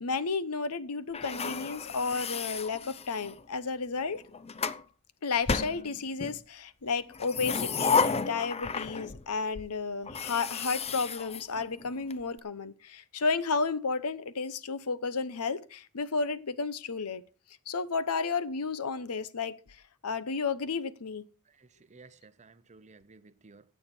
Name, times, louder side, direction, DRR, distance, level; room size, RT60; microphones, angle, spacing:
voice 1, 0.0-4.2 5.2-17.2 17.7-19.6 20.0-21.2, left 4 dB, 85° left, 0.9 m, -32 dB
sound 1, 1.1-3.4 4.1-4.8 5.5-6.4 7.1-9.3 9.5-9.7 10.1-12.1, left 5 dB, 30° left, 0.6 m, -32 dB
voice 2, 21.5-23.7, right 3 dB, 30° right, 0.7 m, -56 dB
16.0 x 8.8 x 4.4 m
head